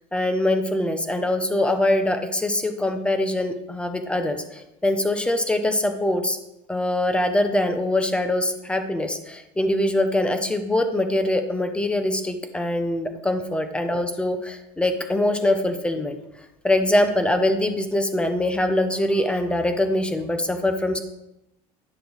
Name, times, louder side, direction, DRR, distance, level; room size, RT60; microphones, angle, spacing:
voice 1, 0.1-6.4 6.7-16.2 16.6-21.0, left 1 dB, 5° left, 7 dB, 0.7 m, -23 dB
9.6 x 6.6 x 4.0 m, 0.92 s
cardioid pair, 140°, 16 cm